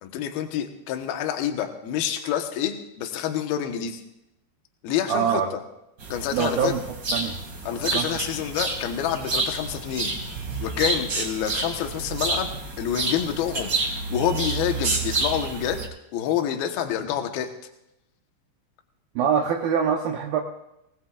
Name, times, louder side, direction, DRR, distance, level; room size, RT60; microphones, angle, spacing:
voice 1, 0.0-4.0 4.8-5.4 6.1-6.7 7.6-12.5 12.8-15.8 16.1-17.5, left 10 dB, 65° left, 5 dB, 2.7 m, -28 dB
voice 2, 5.1-5.5 6.3-6.8 7.1-7.4 7.8-8.2 19.2-20.4, right 7 dB, 75° right, 1 dB, 2.2 m, -24 dB
sound 1, 6.0-15.9, right 3 dB, 35° right, 2.1 m, -29 dB
25.5 x 18.5 x 2.5 m, 0.88 s
omnidirectional pair, 5.5 m